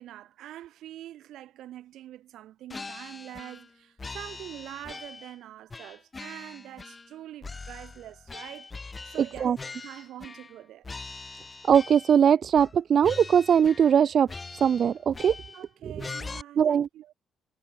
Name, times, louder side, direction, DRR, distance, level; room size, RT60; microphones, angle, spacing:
voice 1, 0.0-8.7 9.0-10.9 15.5-17.1, right 13 dB, 80° right, 7.2 m, -44 dB
sound 1, 2.7-3.7 4.0-5.4 5.7-7.1 7.4-10.6 10.8-12.2 12.6-12.8 13.0-14.0 14.3-15.6 16.0-16.4, left 4 dB, 25° left, 5.3 m, -42 dB
voice 2, 11.7-14.3 14.6-15.4 15.8-15.9 16.6-16.9, right 8 dB, 55° right, 0.4 m, -21 dB
cardioid pair, 90°, 0 cm